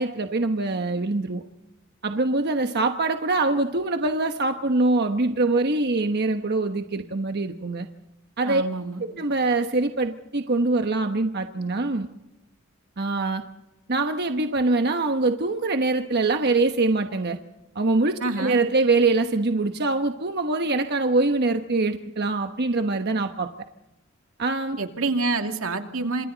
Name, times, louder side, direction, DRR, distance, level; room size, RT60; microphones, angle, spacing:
voice 1, 0.0-1.4 2.0-7.9 8.4-8.6 9.1-12.1 13.0-13.4 13.9-17.4 17.7-23.5 24.4-24.8, right 3 dB, 50° right, 6 dB, 1.1 m, -23 dB
voice 2, 8.4-9.0 18.2-18.6 24.8-26.3, right 3 dB, 80° right, 5 dB, 2.6 m, -27 dB
29.0 x 27.0 x 4.0 m, 0.95 s
head